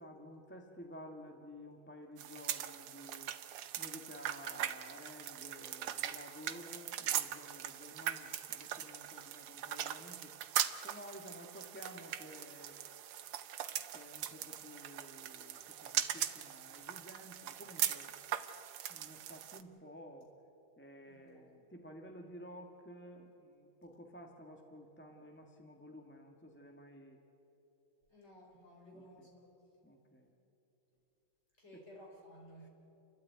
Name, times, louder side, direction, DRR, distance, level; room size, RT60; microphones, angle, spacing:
voice 1, 0.0-3.3 3.8-10.3 10.8-12.8 13.0-13.2 13.9-18.1 18.9-20.3 20.8-27.2 28.9-29.3 29.8-30.3 31.7-31.8 32.6-32.7, equal, 5° left, 2 dB, 1.1 m, -53 dB
sound 1, 2.2-19.6, right 11 dB, 85° right, 1.8 m, -40 dB
voice 2, 6.5-7.0 21.1-21.6 28.1-29.5 31.6-32.7, equal, 30° left, -2 dB, 5.2 m, -57 dB
29.5 x 13.0 x 9.3 m, 3.0 s
omnidirectional pair, 2.3 m